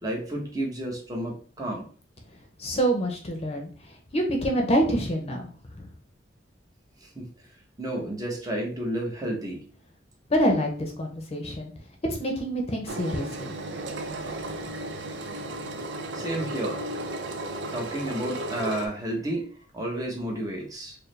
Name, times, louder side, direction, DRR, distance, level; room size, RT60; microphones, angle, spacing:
voice 1, 0.0-1.9 7.0-7.3 7.8-9.6 16.1-16.8 17.7-21.0, right 1 dB, 20° right, -1 dB, 0.9 m, -31 dB
voice 2, 2.6-3.7 4.1-5.5 5.8-5.9 10.3-11.7 12.2-13.5, equal, 35° left, 2 dB, 0.7 m, -26 dB
Engine, 12.9-18.9, right 1 dB, 75° right, 0.5 m, -34 dB
4.5 x 2.1 x 3.2 m, 0.41 s
head